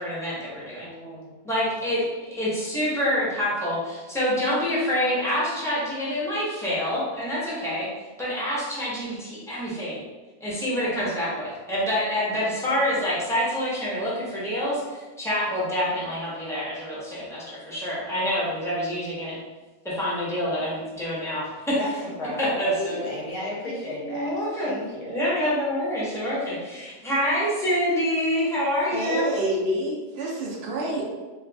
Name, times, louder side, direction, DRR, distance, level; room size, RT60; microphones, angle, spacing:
voice 1, 0.0-0.9 1.4-7.9 8.2-10.0 10.4-19.4 19.8-21.8 22.4-23.0 23.6-23.7 24.0-24.7 25.0-29.3, equal, ahead, -9 dB, 0.8 m, -27 dB
voice 2, 0.8-1.6 21.8-25.1, left 1 dB, 65° left, -4 dB, 1.3 m, -34 dB
voice 3, 28.9-31.0, right 1 dB, 55° right, -3 dB, 0.7 m, -27 dB
3.1 x 2.5 x 3.4 m, 1.2 s
omnidirectional pair, 1.7 m